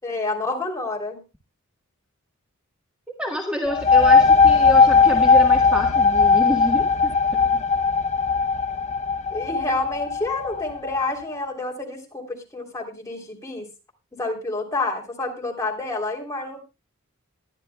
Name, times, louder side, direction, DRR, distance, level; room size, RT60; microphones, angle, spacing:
voice 1, 0.0-1.2 9.3-13.7 14.1-16.6, left 2 dB, 15° left, 0 dB, 3.2 m, -29 dB
voice 2, 3.2-7.1 7.5-7.6, equal, 5° right, 1 dB, 1.4 m, -28 dB
sound 1, 3.6-11.1, left 5 dB, 35° left, 0.7 m, -18 dB
21.0 x 11.0 x 2.3 m, 0.27 s
head